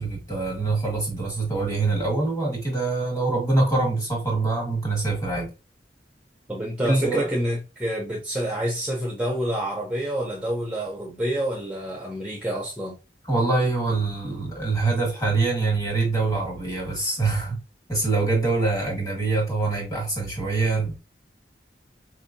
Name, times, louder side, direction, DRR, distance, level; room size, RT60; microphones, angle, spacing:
voice 1, 0.0-5.5 6.8-7.3 13.3-17.6 17.9-21.0, right 3 dB, 20° left, 1.6 m, -24 dB
voice 2, 6.5-13.0, right 1 dB, 5° right, 0.5 m, -28 dB
4.3 x 2.6 x 2.5 m
head